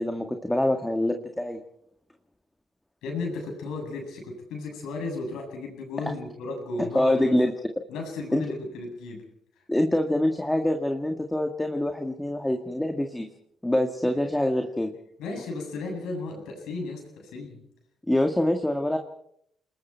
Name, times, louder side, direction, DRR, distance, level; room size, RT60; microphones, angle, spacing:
voice 1, 0.0-1.6 6.9-7.5 8.3-8.5 9.7-13.3 13.6-14.9 18.1-19.0, left 1 dB, 10° left, 5 dB, 1.8 m, -25 dB
voice 2, 3.0-7.4 7.9-9.2 15.2-17.6, left 3 dB, 85° left, 1 dB, 7.8 m, -34 dB
29.5 x 20.0 x 4.6 m, 0.70 s
cardioid pair, 90°, 0 cm